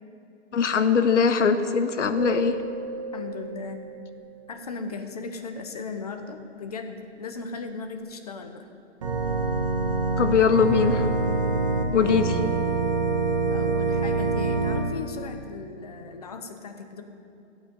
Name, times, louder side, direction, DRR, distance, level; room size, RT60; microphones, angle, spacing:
voice 1, 0.5-2.5 10.2-11.1 11.9-12.4, left 6 dB, 80° left, 10 dB, 1.1 m, -21 dB
sound 1, 2.2-4.4, right 6 dB, 45° right, 1.7 m, -36 dB
voice 2, 3.1-3.8 4.5-8.7 13.4-17.0, left 4 dB, 35° left, 7 dB, 0.8 m, -37 dB
Organ, 9.0-14.8, right 3 dB, 30° right, 1.3 m, -25 dB
14.5 x 8.8 x 5.3 m, 2.8 s
hypercardioid pair, 180°, 36 cm